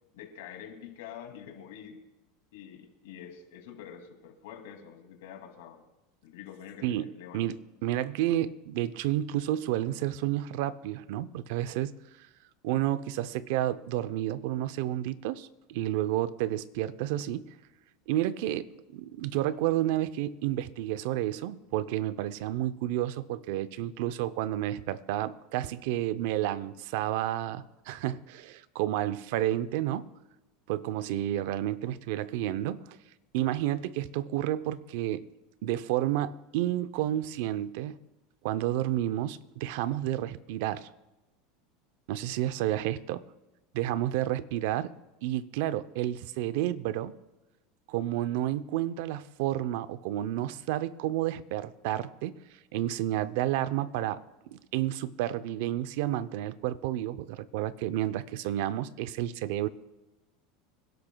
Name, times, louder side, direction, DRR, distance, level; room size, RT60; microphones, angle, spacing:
voice 1, 0.1-2.0 2.5-5.8 6.2-7.4, left 9 dB, 85° left, 2.5 m, -46 dB
voice 2, 6.8-11.9 12.6-17.5 18.1-30.1 30.7-32.9 33.3-35.3 35.6-38.0 38.4-40.9 42.1-43.2 43.7-44.9 45.2-47.2 47.9-52.4 52.7-59.7, right 13 dB, 70° right, 0.6 m, -31 dB
26.5 x 12.0 x 2.3 m
supercardioid pair, 140°, 0 cm